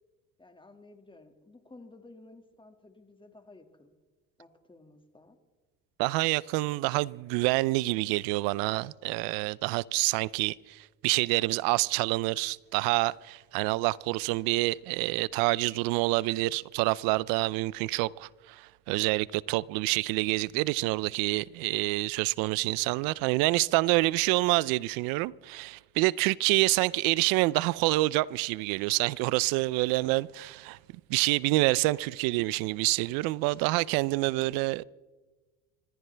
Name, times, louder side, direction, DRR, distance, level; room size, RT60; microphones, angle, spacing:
voice 1, 0.4-3.9 4.4-5.4, left 2 dB, 15° left, 2.0 m, -54 dB
voice 2, 6.0-30.8 31.1-34.8, right 21 dB, 75° right, 0.6 m, -27 dB
27.0 x 14.5 x 3.4 m
supercardioid pair, 90°, 35 cm